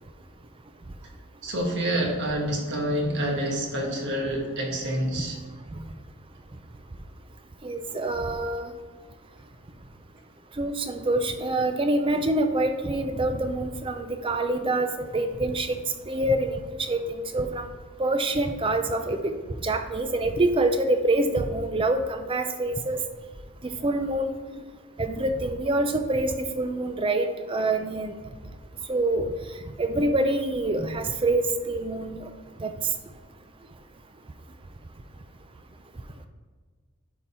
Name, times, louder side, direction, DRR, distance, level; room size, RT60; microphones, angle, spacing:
voice 1, 1.4-5.4 24.5-24.7, right 1 dB, 50° right, 1 dB, 1.5 m, -27 dB
voice 2, 7.6-8.7 10.6-15.8 16.1-16.6 16.9-17.7 18.0-19.4 19.6-23.0 23.6-24.3 25.0-28.1 28.9-29.3 29.8-32.3 32.6-32.7, right 2 dB, 25° right, 7 dB, 0.5 m, -26 dB
11.0 x 3.8 x 4.2 m, 1.5 s
head